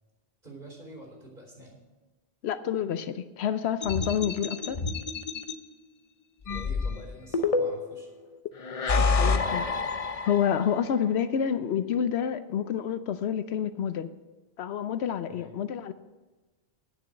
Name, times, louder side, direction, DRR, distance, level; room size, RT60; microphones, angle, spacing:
voice 1, 0.4-1.8 6.5-8.1 15.3-15.5, right 1 dB, 50° right, -1 dB, 3.9 m, -47 dB
voice 2, 2.4-4.8 9.2-9.7 10.2-14.1 14.6-15.9, left 8 dB, 75° left, 12 dB, 0.9 m, -28 dB
sound 1, 3.8-5.5 6.5-8.0 8.6-10.8, left 4 dB, 40° left, 0.6 m, -28 dB
9.3 x 6.9 x 7.7 m, 1.2 s
omnidirectional pair, 1.1 m